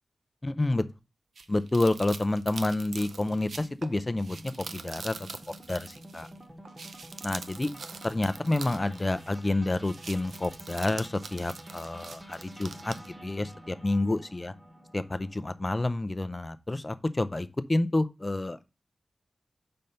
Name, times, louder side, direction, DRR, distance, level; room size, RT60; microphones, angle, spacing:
voice 1, 0.4-0.8 1.5-4.4 4.7-5.3 5.7-6.3 7.2-7.7 8.0-12.9 13.2-14.5 14.9-18.6, left 2 dB, 25° left, 0.5 m, -29 dB
sound 1, 1.4-15.6, equal, 15° right, 1.2 m, -49 dB
sound 2, 1.4-6.4 6.7-9.5 9.8-13.1, right 4 dB, 85° right, 0.5 m, -44 dB
5.3 x 4.4 x 5.3 m
wide cardioid pair, 95°, 0 cm